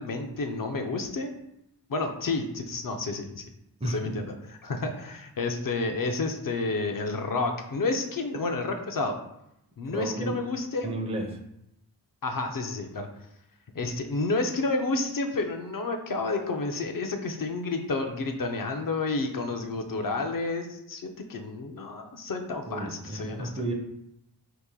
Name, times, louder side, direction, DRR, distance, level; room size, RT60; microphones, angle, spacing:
voice 1, 0.0-1.3 1.9-3.5 3.8-4.3 4.6-9.2 9.8-10.9 12.2-13.1 13.7-23.5, left 3 dB, 55° left, 5 dB, 0.6 m, -30 dB
voice 2, 3.8-4.1 9.9-10.4 10.8-11.4 22.7-23.7, right 1 dB, 15° right, 2 dB, 0.5 m, -32 dB
2.9 x 2.5 x 3.7 m, 0.81 s
cardioid pair, 40°, 42 cm